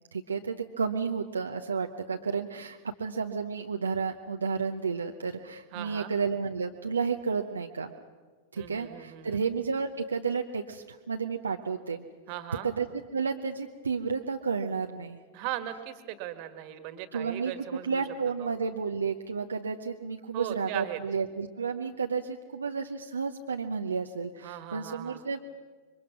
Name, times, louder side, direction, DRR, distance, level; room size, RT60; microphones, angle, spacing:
voice 1, 0.1-7.9 8.5-12.1 12.6-15.2 17.1-25.4, right 5 dB, 75° right, 4 dB, 0.8 m, -32 dB
voice 2, 5.7-6.1 8.6-9.4 12.3-12.7 15.3-18.0 18.4-18.5 20.3-21.0 24.4-25.4, right 12 dB, 45° right, 10 dB, 1.8 m, -38 dB
27.0 x 23.0 x 6.1 m, 1.4 s
figure-of-eight pair, 90°, 0 cm